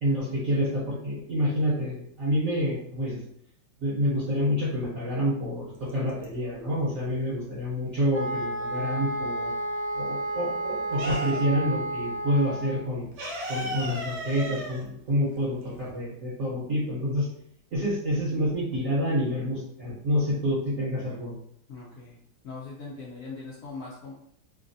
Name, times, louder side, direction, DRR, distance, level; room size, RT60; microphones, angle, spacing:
voice 1, 0.0-3.2 3.8-9.5 9.9-13.0 13.5-17.3 17.7-21.3, equal, 55° right, -7 dB, 1.0 m, -28 dB
sound 1, 5.8-6.7 7.0-9.0 9.3-11.7 12.0-12.1 12.4-16.0, equal, 70° right, 1.3 m, -36 dB
sound 2, 8.1-12.8, right 1 dB, 35° left, 1.4 m, -31 dB
voice 2, 21.7-22.2 22.4-24.1, left 3 dB, 80° left, -5 dB, 0.7 m, -40 dB
3.2 x 2.3 x 2.6 m, 0.68 s
omnidirectional pair, 2.2 m